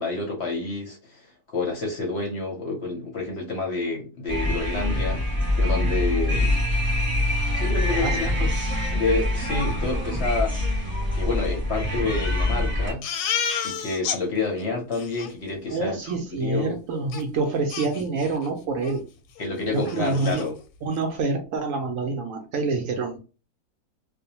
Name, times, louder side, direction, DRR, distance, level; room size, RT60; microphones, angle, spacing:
voice 1, 0.0-5.2 5.6-6.6 7.5-8.5 8.9-10.8 11.1-13.3 13.6-16.1 16.4-16.7 19.4-20.5, left 3 dB, 55° left, 0 dB, 0.8 m, -29 dB
sound 1, 4.3-12.9, left 1 dB, 10° right, 0.5 m, -24 dB
voice 2, 7.9-8.5 15.7-19.0 19.7-20.5 20.8-23.2, right 3 dB, 70° right, 4 dB, 0.8 m, -27 dB
Crying sobbing, 13.0-14.2 14.6-14.7 14.9-15.3 17.1-17.2 17.7-18.5 18.8-19.0 19.4-19.5 19.8-20.5, left 7 dB, 90° left, 1.2 m, -30 dB
2.5 x 2.1 x 2.7 m, 0.33 s
omnidirectional pair, 1.7 m